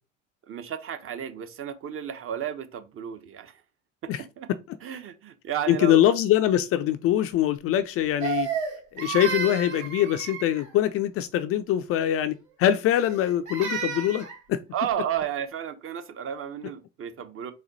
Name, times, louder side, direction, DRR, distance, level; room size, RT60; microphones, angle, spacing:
voice 1, 0.5-3.6 4.2-4.5 4.8-6.0 14.7-17.5, right 9 dB, 35° right, 0.7 m, -33 dB
voice 2, 5.7-8.5 8.9-14.6, left 11 dB, 40° left, 0.4 m, -23 dB
Crying sobbing, 8.2-10.7 12.9-14.4, right 6 dB, 50° right, 2.1 m, -32 dB
4.1 x 2.2 x 4.0 m
hypercardioid pair, 75°, 39 cm